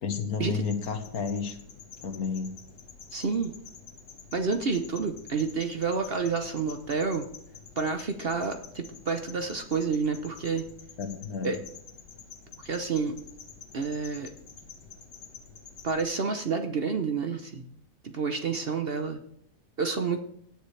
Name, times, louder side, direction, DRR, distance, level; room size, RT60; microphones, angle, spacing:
voice 1, 0.0-1.6 2.0-2.5 11.0-11.6, left 5 dB, 65° left, 7 dB, 1.7 m, -31 dB
sound 1, 0.7-16.0, left 6 dB, 80° left, 2.1 m, -48 dB
voice 2, 3.1-3.5 4.3-7.3 7.8-10.6 11.4-11.6 12.6-13.1 13.7-14.3 15.8-17.7 18.0-19.2 19.8-20.2, right 5 dB, 45° right, 6 dB, 0.9 m, -29 dB
17.0 x 10.0 x 3.3 m, 0.72 s
omnidirectional pair, 1.7 m